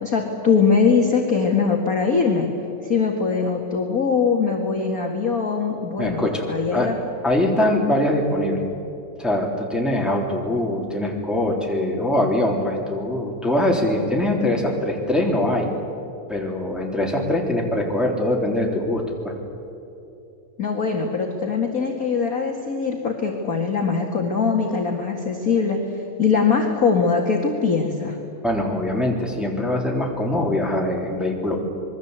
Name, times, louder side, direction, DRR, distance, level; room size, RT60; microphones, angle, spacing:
voice 1, 0.0-2.5 2.8-7.0 20.6-28.2, left 5 dB, 35° left, 1 dB, 2.0 m, -22 dB
voice 2, 6.0-6.4 6.7-6.9 7.2-8.6 9.2-15.7 16.3-19.3 28.4-31.6, left 1 dB, ahead, -1 dB, 3.2 m, -22 dB
26.5 x 22.0 x 8.2 m, 2.8 s
omnidirectional pair, 3.4 m